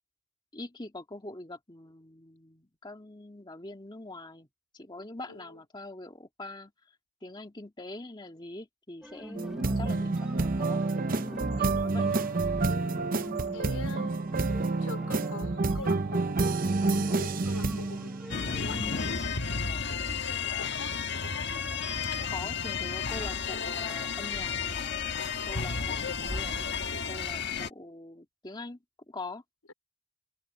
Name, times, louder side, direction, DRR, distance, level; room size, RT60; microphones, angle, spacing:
voice 1, 0.5-4.5 4.7-6.7 7.2-12.1 22.3-25.0 25.4-26.7 27.1-28.8 29.1-29.4, left 2 dB, 20° left, 2.1 m, -43 dB
voice 2, 5.3-5.6 13.5-14.1 14.5-16.7 17.1-21.3 25.7-26.0, left 3 dB, 80° left, 4.5 m, -45 dB
sound 1, 9.0-19.2, equal, 5° right, 0.9 m, -43 dB
sound 2, 9.4-19.0, right 3 dB, 40° right, 0.7 m, -29 dB
sound 3, 18.3-27.7, left 6 dB, 50° left, 1.4 m, -32 dB
open air
head